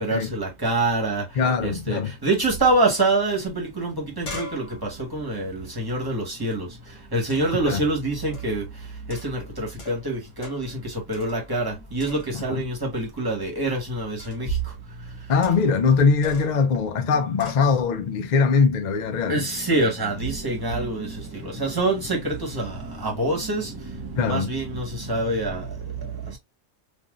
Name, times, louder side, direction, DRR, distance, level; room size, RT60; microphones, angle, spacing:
voice 1, 0.0-1.2 1.6-6.7 7.1-8.6 9.1-14.5 19.3-25.7, right 2 dB, 20° right, 1.2 m, -26 dB
voice 2, 1.4-2.1 7.6-7.8 12.5-12.7 15.3-19.5 24.2-24.5, left 5 dB, 55° left, 0.5 m, -21 dB
sound 1, 3.5-3.6 3.8-6.6 7.3-7.7 8.3-8.6 9.1-10.1 10.4-10.8 11.1-11.7 12.0-12.6 14.2-14.5 15.4-15.8 16.2-16.6 17.4-17.7, left 4 dB, 80° left, 1.4 m, -42 dB
3.4 x 2.6 x 2.3 m
omnidirectional pair, 1.2 m